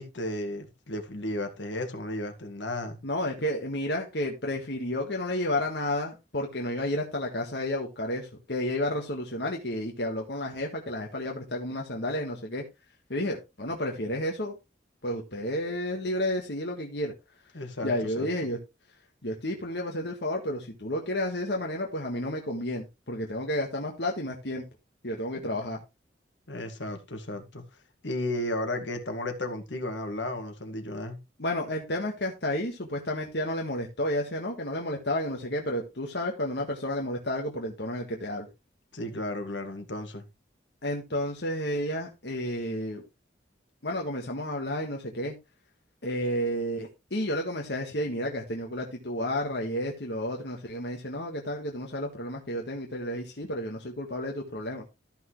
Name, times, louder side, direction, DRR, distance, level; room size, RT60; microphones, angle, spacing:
voice 1, 0.0-3.0 17.5-18.3 26.5-27.6 28.0-31.2 38.9-40.2, left 1 dB, 80° left, 2.0 m, -34 dB
voice 2, 3.0-12.6 13.1-14.5 15.0-17.1 17.8-18.6 19.2-24.6 25.0-25.8 31.4-38.5 40.8-43.0 43.8-45.3 46.0-54.8, left 1 dB, 60° left, 1.6 m, -31 dB
13.5 x 6.1 x 3.2 m
head